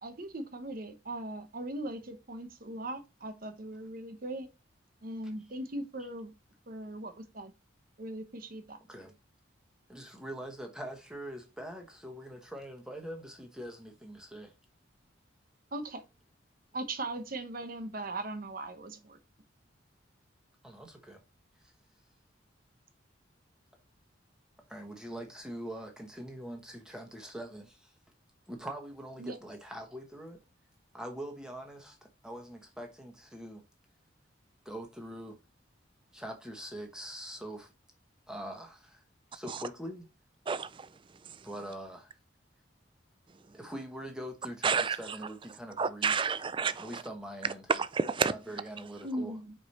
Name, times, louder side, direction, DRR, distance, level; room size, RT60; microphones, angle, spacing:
voice 1, 0.0-4.5 5.0-6.3 6.7-7.5 8.0-8.8 15.7-16.0 16.7-19.2 29.2-29.4 49.0-49.5, right 1 dB, 45° right, 0.9 m, -39 dB
voice 2, 9.9-14.5 20.6-21.2 24.7-27.9 28.5-30.4 30.9-33.6 34.6-35.4 36.1-37.7 38.3-39.0 39.3-40.1 41.4-42.1 43.5-46.3 46.8-47.6 48.3-49.4, right 1 dB, 5° right, 1.1 m, -43 dB
voice 3, 40.5-40.9 41.3-41.4 44.6-45.2 45.8-47.0 47.7-48.3, right 5 dB, 25° right, 0.4 m, -30 dB
5.1 x 4.4 x 4.2 m
head